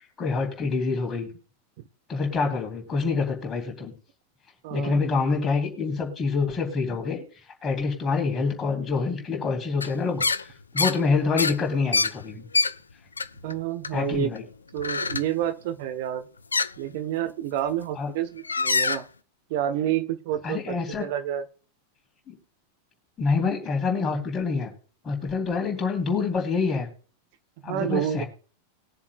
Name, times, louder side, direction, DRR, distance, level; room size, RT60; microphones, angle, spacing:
voice 1, 0.2-1.3 2.1-3.9 4.7-7.2 7.6-12.5 13.9-14.4 17.9-18.1 20.4-21.0 22.3-22.4 23.2-24.7 25.0-26.9 27.6-28.3, left 4 dB, 20° left, 1 dB, 3.2 m, -26 dB
voice 2, 4.6-5.0 13.4-14.3 14.7-16.3 16.8-19.1 19.5-21.4 27.6-28.2, right 11 dB, 50° right, 8 dB, 0.9 m, -29 dB
sound 1, 9.8-9.9 10.2-10.4 10.8-11.0 11.4-12.7 13.2-13.6 13.8-14.4 14.8-15.3 16.5-16.7 17.6-17.8 18.4-19.0, left 4 dB, 75° left, 0.4 m, -25 dB
20.5 x 7.2 x 2.3 m, 0.39 s
figure-of-eight pair, 90°, 0 cm